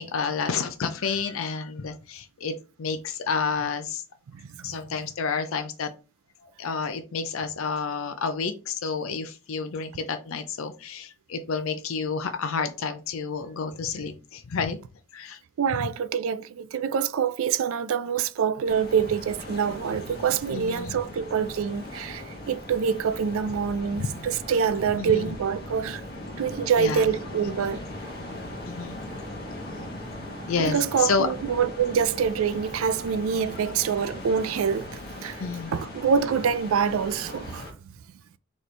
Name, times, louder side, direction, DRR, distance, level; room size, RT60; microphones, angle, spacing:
voice 1, 0.0-4.0 4.6-5.9 6.4-14.8 15.1-15.4 15.8-15.9 19.9-20.0 20.5-21.0 24.0-24.1 25.0-25.3 26.8-27.1 28.6-29.0 30.5-31.3 35.4-35.8, left 5 dB, 75° left, 0.5 m, -30 dB
voice 2, 4.4-4.7 15.6-26.0 26.4-27.8 30.6-34.9 35.2-35.4 35.7-37.7, right 7 dB, 75° right, 0.4 m, -26 dB
sound 1, 18.6-37.7, left 1 dB, 45° left, 1.2 m, -39 dB
4.1 x 3.1 x 3.2 m
head